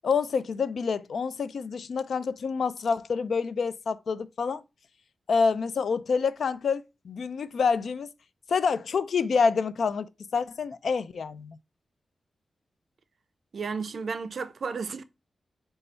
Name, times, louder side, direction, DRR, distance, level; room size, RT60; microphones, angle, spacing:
voice 1, 0.0-4.6 5.3-8.1 8.5-11.6, left 5 dB, 70° left, 0.3 m, -27 dB
voice 2, 13.5-15.0, right 5 dB, 55° right, 0.4 m, -33 dB
4.0 x 2.3 x 4.2 m
wide cardioid pair, 155°, 0 cm